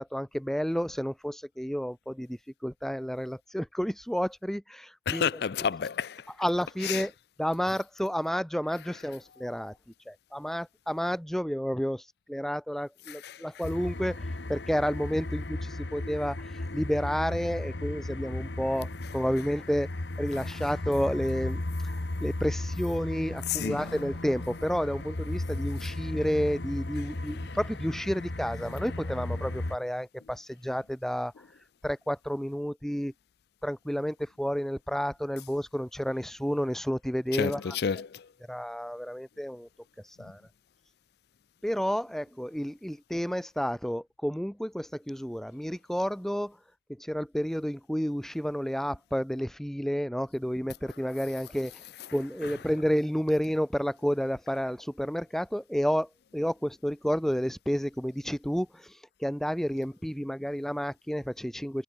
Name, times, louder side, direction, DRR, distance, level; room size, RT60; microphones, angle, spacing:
voice 1, 0.0-5.3 6.4-7.1 7.4-9.8 10.1-19.9 20.2-31.5 31.8-33.1 33.6-37.8 38.5-39.7 40.0-40.4 41.6-46.6 46.9-51.8 52.1-61.8, equal, ahead, 0.6 m, -31 dB
voice 2, 5.1-6.3 6.8-7.0 13.1-13.4 20.3-20.4 23.5-24.0 27.5-27.6 37.3-38.3 52.4-52.5, left 7 dB, 65° left, 0.4 m, -31 dB
sound 1, 13.6-29.8, left 2 dB, 85° left, 1.5 m, -35 dB
head